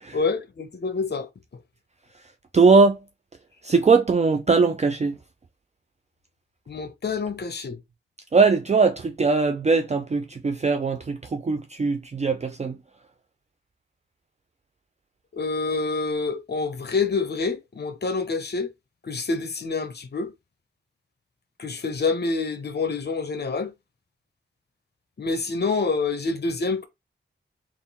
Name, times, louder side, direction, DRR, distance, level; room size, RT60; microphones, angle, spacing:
voice 1, 0.1-1.3 6.7-7.8 15.3-18.7 19.0-20.3 21.6-23.7 25.2-26.9, left 4 dB, 55° left, 0.8 m, -27 dB
voice 2, 2.5-3.0 3.6-5.2 8.3-12.8, right 4 dB, 35° right, 0.5 m, -20 dB
3.6 x 2.6 x 4.1 m
wide cardioid pair, 85°, 21 cm